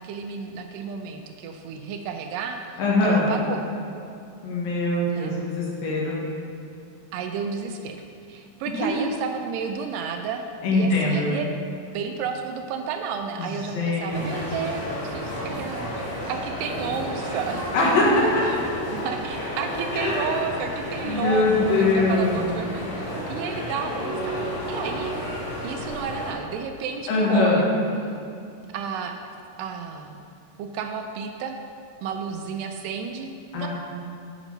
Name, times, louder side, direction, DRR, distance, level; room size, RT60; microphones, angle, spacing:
voice 1, 0.0-3.7 5.1-5.4 7.1-8.0 8.3-10.4 10.7-11.5 11.9-17.6 18.5-18.6 18.9-25.1 25.6-27.7 28.7-29.1 29.6-30.3 30.6-31.6 32.0-33.7, right 6 dB, 80° right, 5 dB, 2.1 m, -32 dB
voice 2, 2.8-3.3 4.4-6.2 10.6-11.3 13.4-14.4 17.7-18.4 19.9-20.3 21.0-22.6 27.1-27.6 33.5-33.7, left 2 dB, 80° left, -4 dB, 3.2 m, -22 dB
sound 1, 14.1-26.3, equal, 50° left, 2.7 m, -32 dB
9.0 x 5.2 x 5.3 m, 2.6 s
omnidirectional pair, 4.0 m